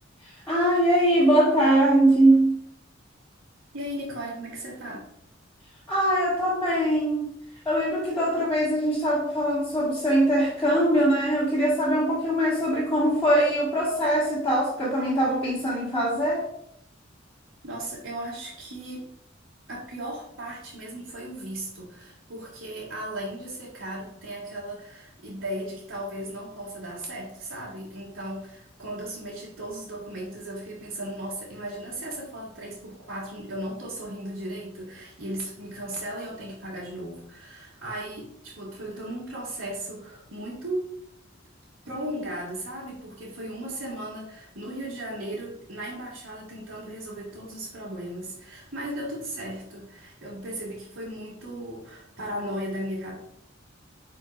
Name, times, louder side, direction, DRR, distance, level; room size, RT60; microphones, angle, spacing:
voice 1, 0.2-2.6 5.9-7.3 7.6-16.5, right 1 dB, 5° left, -11 dB, 2.3 m, -22 dB
voice 2, 3.7-5.0 17.6-19.1 19.7-40.9 41.9-53.1, right 1 dB, 85° right, -10 dB, 2.4 m, -36 dB
10.5 x 4.6 x 2.6 m, 0.71 s
head